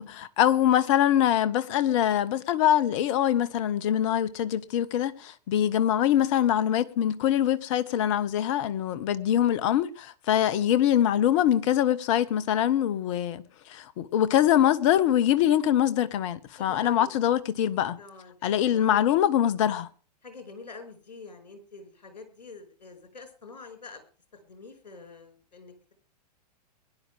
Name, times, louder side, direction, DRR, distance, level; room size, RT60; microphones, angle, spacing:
voice 1, 0.0-13.4 13.7-18.0 18.4-19.9, left 11 dB, 50° left, 1.4 m, -24 dB
voice 2, 16.5-17.1 18.0-19.1 20.2-24.0 24.3-25.7, left 4 dB, 80° left, 5.6 m, -45 dB
22.5 x 11.0 x 3.5 m
figure-of-eight pair, 105°, 21 cm